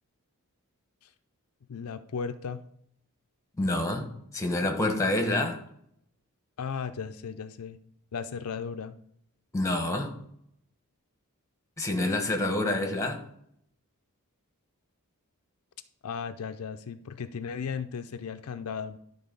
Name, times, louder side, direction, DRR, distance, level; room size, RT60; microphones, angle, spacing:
voice 1, 1.7-2.6 6.6-7.8 8.1-8.9 16.0-19.0, left 6 dB, 75° left, 0.5 m, -36 dB
voice 2, 3.6-5.6 9.5-10.1 11.8-13.2, left 2 dB, 15° left, 1.2 m, -27 dB
11.5 x 4.0 x 5.3 m
head